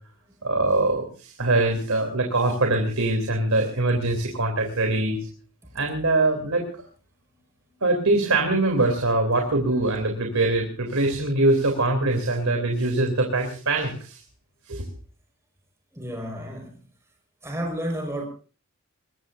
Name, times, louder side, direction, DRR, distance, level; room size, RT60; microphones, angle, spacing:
voice 1, 0.4-5.2 5.7-6.6 7.8-14.2 14.7-14.8, right 2 dB, 85° right, 3.3 m, -23 dB
voice 2, 15.9-16.7 17.4-18.2, equal, 15° right, 5.1 m, -31 dB
23.5 x 20.5 x 2.6 m
head